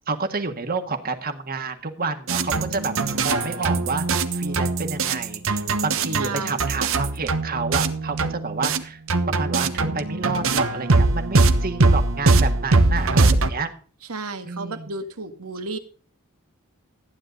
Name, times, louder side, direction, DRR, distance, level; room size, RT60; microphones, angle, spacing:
voice 1, 0.1-2.9 3.2-9.0 9.3-13.7 14.4-14.9, right 4 dB, 45° right, 6 dB, 1.8 m, -29 dB
sound 1, 2.3-8.8 9.1-13.5, right 3 dB, 65° right, 1.3 m, -21 dB
voice 2, 6.2-6.7 14.1-15.8, right 3 dB, 85° right, 7 dB, 2.0 m, -32 dB
14.5 x 10.0 x 4.0 m, 0.40 s
head